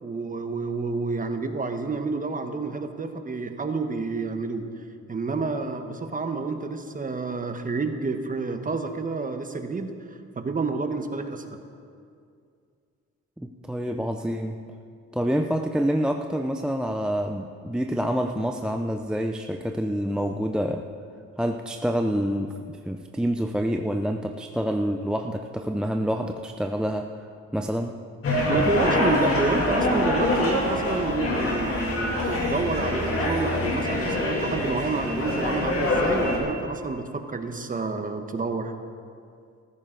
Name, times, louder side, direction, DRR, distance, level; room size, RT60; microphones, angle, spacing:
voice 1, 0.0-4.7 5.1-9.9 10.4-11.6 28.5-38.7, right 4 dB, 25° right, 7 dB, 1.1 m, -29 dB
voice 2, 13.4-14.6 15.1-20.8 21.4-27.1 27.5-28.0, equal, 5° right, 4 dB, 0.5 m, -27 dB
sound 1, 28.2-36.4, left 1 dB, 50° left, 2.6 m, -25 dB
14.0 x 14.0 x 3.9 m, 2.3 s
cardioid pair, 90°, 30 cm